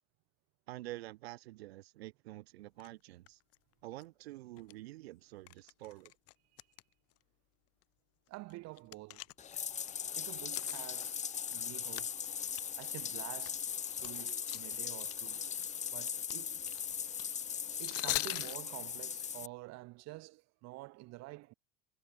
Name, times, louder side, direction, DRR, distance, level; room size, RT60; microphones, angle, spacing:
voice 1, 0.7-3.4 3.8-6.1, right 17 dB, 90° right, 3.8 m, -48 dB
sound 1, 2.8-2.9 3.3-3.6 4.0-4.1 4.6-4.7 5.5-6.8 7.1-7.2 7.8-7.9 8.3-9.9 10.5-11.7 12.0-12.1 12.5-15.1 15.4-18.6, left 20 dB, 50° left, 1.0 m, -41 dB
voice 2, 8.3-9.3 10.1-12.2 12.8-13.7 13.9-15.4 15.9-16.7 17.8-21.5, right 21 dB, 60° right, 4.5 m, -49 dB
Bathtub (filling or washing), 9.4-19.5, left 8 dB, 25° left, 0.9 m, -39 dB
supercardioid pair, 115°, 30 cm